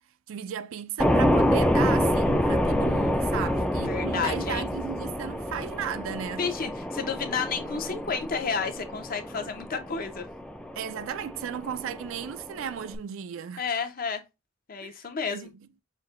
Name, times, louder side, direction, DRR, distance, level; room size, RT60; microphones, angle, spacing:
voice 1, 0.3-6.5 10.8-13.7 14.8-14.9 15.3-15.7, right 8 dB, 75° right, 0.4 m, -35 dB
sound 1, 1.0-13.0, equal, 5° left, 0.3 m, -27 dB
voice 2, 3.9-4.7 6.4-10.3 13.6-14.2 14.7-15.5, left 5 dB, 45° left, 0.7 m, -31 dB
5.8 x 2.6 x 2.4 m
head